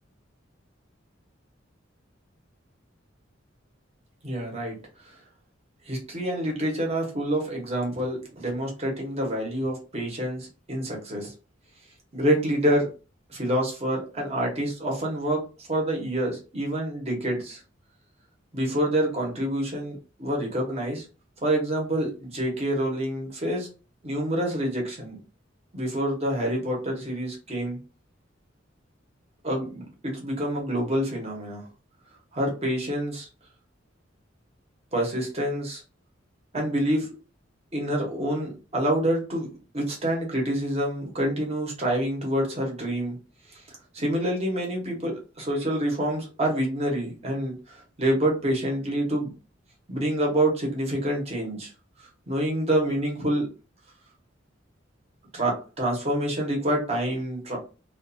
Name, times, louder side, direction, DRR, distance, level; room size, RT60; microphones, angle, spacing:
voice 1, 4.2-4.7 5.9-11.3 12.1-12.9 13.3-17.6 18.5-21.0 21.4-23.7 24.0-25.2 25.7-27.8 29.4-31.6 32.3-33.3 34.9-35.8 36.5-37.1 37.7-43.2 43.5-43.6 43.9-47.5 48.0-49.3 49.9-51.7 52.3-53.5 55.3-57.6, right 1 dB, 35° right, -1 dB, 1.0 m, -27 dB
2.5 x 2.4 x 2.6 m, 0.34 s
head